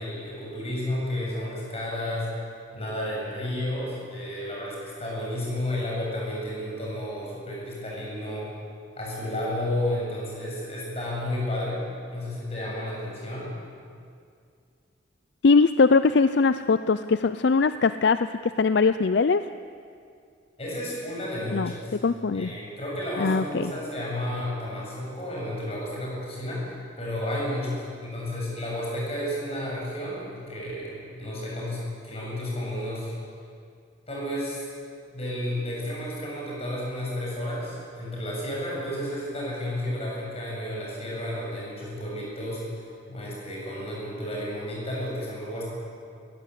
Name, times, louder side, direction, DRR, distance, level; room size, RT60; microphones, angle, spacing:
voice 1, 0.0-2.4 2.7-8.5 9.0-11.8 12.1-13.5 20.6-21.9 22.3-33.1 34.1-34.6 35.1-42.6 43.1-45.6, left 1 dB, 30° left, -4 dB, 7.5 m, -32 dB
voice 2, 15.4-19.4 21.5-21.7 22.0-22.5 23.2-23.7, left 4 dB, 60° left, 12 dB, 0.4 m, -21 dB
21.0 x 16.5 x 8.4 m, 2.3 s
head